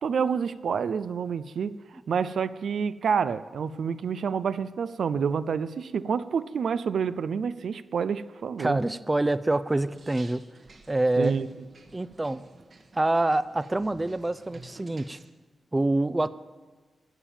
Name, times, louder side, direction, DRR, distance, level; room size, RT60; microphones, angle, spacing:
voice 1, 0.0-8.8 11.2-11.5, right 6 dB, 75° right, 14 dB, 0.4 m, -28 dB
voice 2, 8.6-10.4 10.9-11.4 11.9-12.4 12.9-15.2 15.7-16.3, right 2 dB, 20° right, 14 dB, 0.5 m, -26 dB
sound 1, 9.8-15.3, right 3 dB, 55° right, 1.4 m, -52 dB
12.0 x 7.0 x 9.0 m, 1.3 s
cardioid pair, 80°, 0 cm